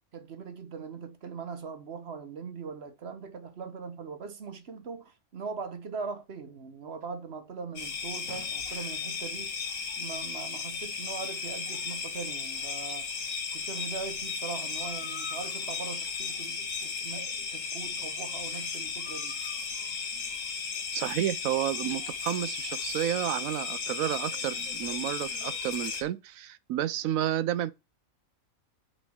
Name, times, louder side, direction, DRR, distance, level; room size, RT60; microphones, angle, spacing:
voice 1, 0.1-9.5 10.0-13.1 13.5-19.4, right 5 dB, 50° right, 1.1 m, -40 dB
sound 1, 7.8-26.0, left 5 dB, 65° left, 1.5 m, -35 dB
voice 2, 20.9-27.7, right 12 dB, 75° right, 1.0 m, -31 dB
6.4 x 4.2 x 6.3 m
omnidirectional pair, 1.5 m